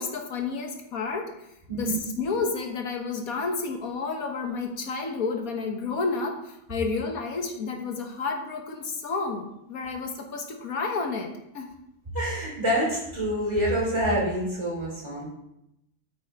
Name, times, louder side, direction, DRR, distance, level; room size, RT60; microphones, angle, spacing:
voice 1, 0.0-1.3 1.7-11.7, left 4 dB, 85° left, 4 dB, 1.6 m, -31 dB
voice 2, 12.1-15.2, equal, 20° right, -4 dB, 3.4 m, -26 dB
8.7 x 6.3 x 4.5 m, 0.82 s
omnidirectional pair, 1.5 m